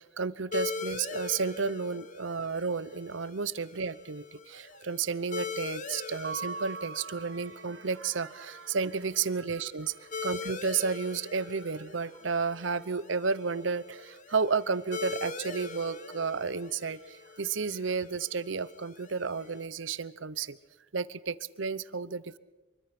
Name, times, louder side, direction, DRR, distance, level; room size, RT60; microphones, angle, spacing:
voice 1, 0.0-20.6 20.9-22.4, right 5 dB, 80° right, 17 dB, 0.9 m, -32 dB
sound 1, 0.5-19.7, left 5 dB, 40° left, 1.3 m, -42 dB
Mallet percussion, 6.2-8.1, right 5 dB, 45° right, 0.8 m, -40 dB
25.0 x 24.0 x 6.0 m, 1.1 s
head